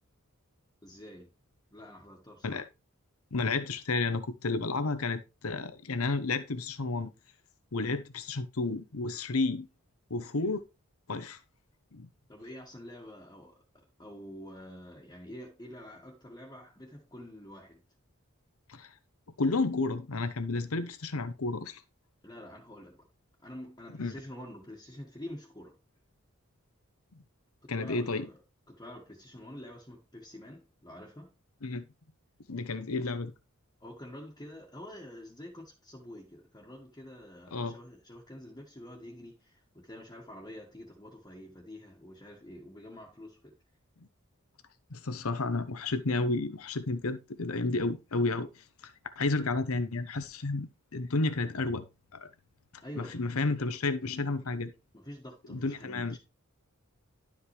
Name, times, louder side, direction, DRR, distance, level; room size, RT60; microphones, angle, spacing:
voice 1, 0.8-1.3 1.7-2.6 12.3-17.8 22.2-23.1 23.4-25.8 27.7-28.4 28.7-31.3 32.7-32.8 33.8-43.5 52.8-53.3 54.0-54.2 54.9-56.2, left 1 dB, 20° left, 1.4 m, -47 dB
voice 2, 3.3-7.1 7.7-9.7 10.1-10.6 11.1-11.4 11.9-12.1 18.7-18.9 19.4-21.8 24.0-24.1 27.7-28.3 31.6-31.8 32.5-33.3 37.5-37.8 44.9-51.8 52.1-52.3 53.0-54.7 55.5-56.2, left 3 dB, 80° left, 0.9 m, -31 dB
11.5 x 5.3 x 3.2 m
head